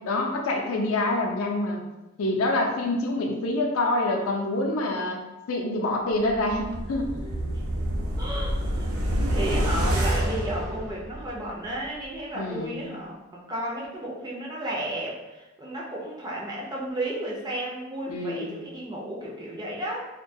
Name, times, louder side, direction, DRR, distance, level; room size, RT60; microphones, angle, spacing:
voice 1, 0.0-1.8 2.2-5.2 5.5-7.1 12.3-12.8 18.1-18.6, left 2 dB, 75° left, 1 dB, 0.4 m, -26 dB
sound 1, 6.3-11.5 11.8-11.9, equal, 80° right, 0.5 m, -27 dB
voice 2, 8.2-8.9 9.3-20.1, right 1 dB, 20° right, -4 dB, 0.4 m, -33 dB
2.2 x 2.1 x 2.6 m, 1.0 s
head